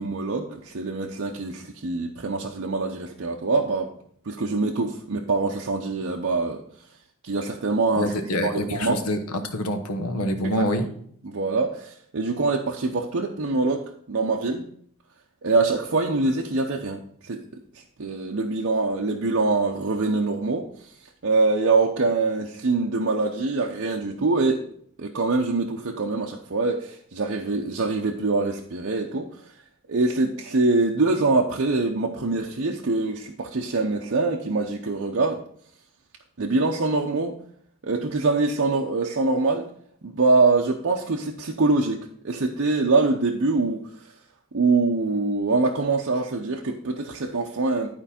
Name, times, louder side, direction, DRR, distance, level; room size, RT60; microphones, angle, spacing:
voice 1, 0.0-3.9 4.2-6.6 7.2-8.1 8.4-9.0 10.4-10.7 11.2-14.7 15.4-17.4 17.7-20.9 21.2-24.6 25.0-29.3 29.9-35.4 36.4-37.4 37.8-39.7 40.0-43.8 44.5-47.9, right 3 dB, 60° right, 0 dB, 0.7 m, -24 dB
voice 2, 8.0-10.9, left 1 dB, 85° left, 7 dB, 1.1 m, -26 dB
11.5 x 4.5 x 4.2 m, 0.63 s
head